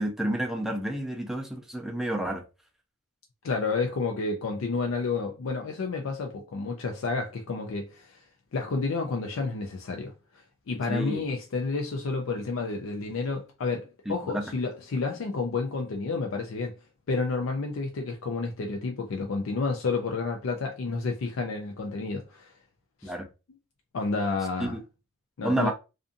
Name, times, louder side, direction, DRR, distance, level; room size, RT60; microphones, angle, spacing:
voice 1, 0.0-2.4 10.9-11.2 14.1-14.4 23.0-23.3 24.6-24.8 25.4-25.7, right 1 dB, ahead, 0.4 m, -30 dB
voice 2, 3.4-8.2 8.5-10.1 10.7-16.7 17.1-22.5 23.0-23.1 23.9-24.8 25.4-25.7, left 4 dB, 70° left, 0.4 m, -30 dB
2.5 x 2.5 x 2.4 m
head